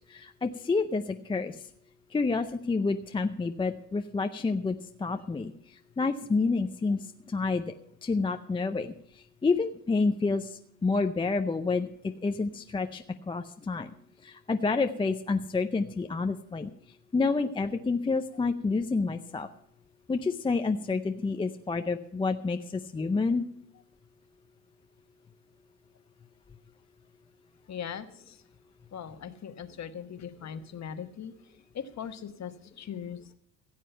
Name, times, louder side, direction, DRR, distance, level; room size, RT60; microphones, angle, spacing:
voice 1, 0.1-1.6 2.1-7.7 8.0-11.9 12.2-13.9 14.2-16.7 17.1-19.5 20.1-23.4, left 4 dB, 10° left, 7 dB, 0.5 m, -29 dB
voice 2, 27.7-28.4 28.9-31.3 31.7-33.3, left 8 dB, 35° left, 10 dB, 1.2 m, -40 dB
16.0 x 7.5 x 5.6 m, 0.73 s
supercardioid pair, 100°, 49 cm